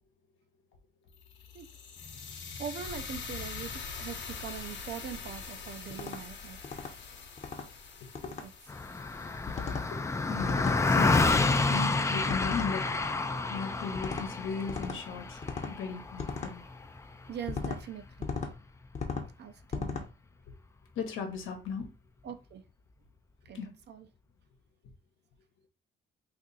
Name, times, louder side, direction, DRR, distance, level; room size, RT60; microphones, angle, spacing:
sound 1, 1.1-11.3, left 5 dB, 65° left, 0.9 m, -44 dB
voice 1, 2.6-6.6 8.4-8.5 17.3-18.4 19.4-20.1 22.2-22.6 23.5-23.6 23.9-24.1, right 8 dB, 60° right, 0.6 m, -42 dB
sound 2, 5.9-6.2 6.6-6.9 7.4-7.7 8.1-8.4 9.5-9.9 10.4-10.8 11.3-11.7 12.3-12.7 13.9-14.3 14.7-15.0 15.4-15.7 16.2-16.5 17.5-17.8 18.2-18.5 18.9-19.3 19.7-20.1, left 5 dB, 35° left, 0.8 m, -36 dB
Car passing by, 8.7-18.3, left 3 dB, 15° left, 0.3 m, -29 dB
voice 2, 10.3-12.9 13.5-15.4 15.7-16.6 21.0-21.9 23.5-23.7, left 5 dB, 85° left, 0.9 m, -36 dB
2.7 x 2.5 x 3.9 m
cardioid pair, 90°, 20 cm